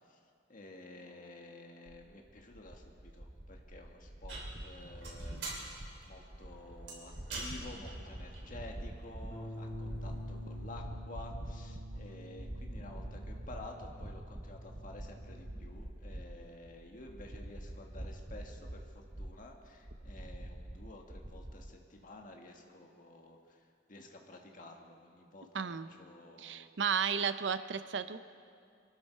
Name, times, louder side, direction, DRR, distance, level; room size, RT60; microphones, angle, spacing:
voice 1, 0.5-5.7 6.0-26.7, left 2 dB, 50° left, 1 dB, 1.7 m, -51 dB
sound 1, 1.9-21.7, right 1 dB, 25° right, 0.7 m, -46 dB
sound 2, 4.3-10.6, right 2 dB, 75° right, 3.2 m, -48 dB
Bass guitar, 9.3-15.6, left 1 dB, 20° left, 2.8 m, -47 dB
voice 2, 25.5-25.9 26.4-28.2, right 7 dB, 90° right, 12 dB, 0.7 m, -33 dB
24.0 x 13.0 x 4.6 m, 2.3 s
head